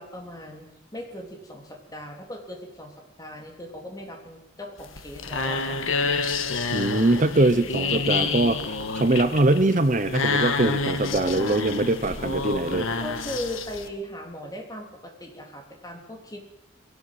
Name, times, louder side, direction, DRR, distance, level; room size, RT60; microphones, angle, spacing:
voice 1, 0.0-5.8 7.8-8.3 11.1-11.6 13.0-16.4, equal, 20° left, 2 dB, 3.5 m, -38 dB
sound 1, 4.8-13.9, left 4 dB, 80° left, 1.6 m, -28 dB
voice 2, 6.7-12.9, right 2 dB, 40° right, 11 dB, 0.9 m, -22 dB
21.0 x 17.5 x 7.8 m, 0.84 s
head